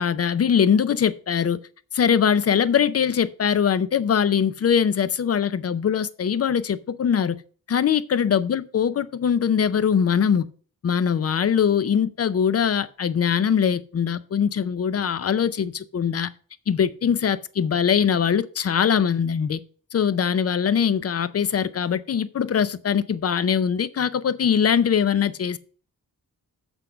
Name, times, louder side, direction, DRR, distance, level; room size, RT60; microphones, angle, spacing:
voice 1, 0.0-1.6 1.9-7.4 7.7-10.4 10.8-16.3 16.7-19.6 19.9-25.6, left 7 dB, 40° left, 0.5 m, -22 dB
8.0 x 5.2 x 5.6 m
wide cardioid pair, 180°, 37 cm